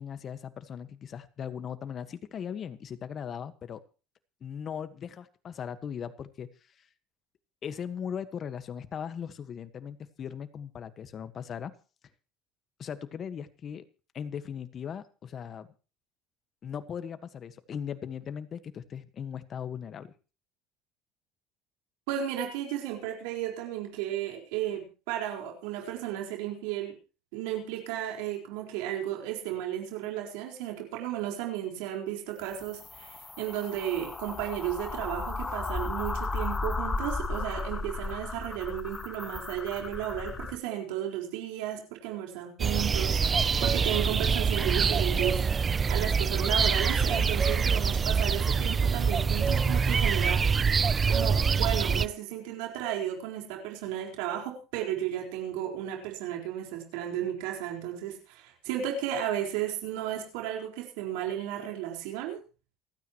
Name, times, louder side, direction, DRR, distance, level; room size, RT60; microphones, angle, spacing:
voice 1, 0.0-3.8 4.4-6.5 6.8-6.9 7.6-11.7 12.8-13.8 14.1-15.7 16.6-20.1, left 8 dB, 40° left, 11 dB, 1.5 m, -38 dB
voice 2, 22.1-27.0 27.3-45.4 45.9-50.6 51.1-62.4, right 11 dB, 90° right, 1 dB, 4.5 m, -34 dB
sound 1, 32.4-40.6, left 3 dB, 20° left, 1.4 m, -35 dB
sound 2, 42.6-52.1, right 5 dB, 25° right, 0.6 m, -25 dB
28.5 x 9.5 x 3.1 m, 0.35 s
cardioid pair, 120°, 0 cm